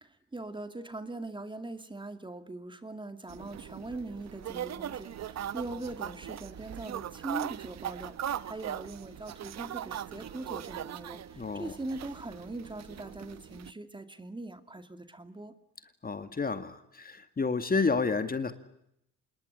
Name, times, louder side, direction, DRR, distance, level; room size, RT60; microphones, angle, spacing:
voice 1, 0.0-15.5, right 2 dB, 15° right, 9 dB, 2.3 m, -41 dB
sound 1, 3.3-13.7, right 10 dB, 60° right, 1.1 m, -40 dB
voice 2, 11.4-11.7 16.0-18.5, left 4 dB, 30° left, 10 dB, 2.2 m, -30 dB
27.0 x 20.5 x 9.8 m, 0.77 s
cardioid pair, 90°, 30 cm